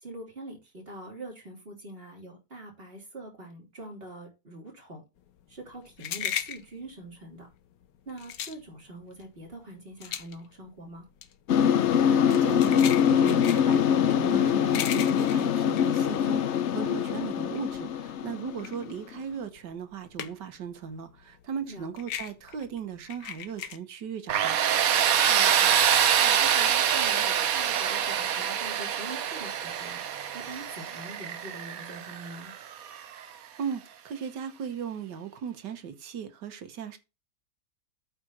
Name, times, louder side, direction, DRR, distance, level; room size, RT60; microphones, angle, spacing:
voice 1, 0.0-5.0 5.5-7.5 8.1-11.1 21.7-21.9 25.3-25.8 26.2-30.0 30.3-32.5, right 1 dB, 35° right, 3.5 m, -44 dB
sound 1, 5.3-16.9 17.2-20.7 20.9-23.8, left 10 dB, 90° left, 1.5 m, -38 dB
sound 2, 11.5-19.1, left 8 dB, 65° left, 0.7 m, -24 dB
voice 2, 12.0-24.6 33.6-37.0, right 7 dB, 85° right, 1.8 m, -37 dB
Tools, 24.3-33.1, right 9 dB, 60° right, 1.2 m, -25 dB
8.7 x 4.1 x 6.0 m
omnidirectional pair, 1.8 m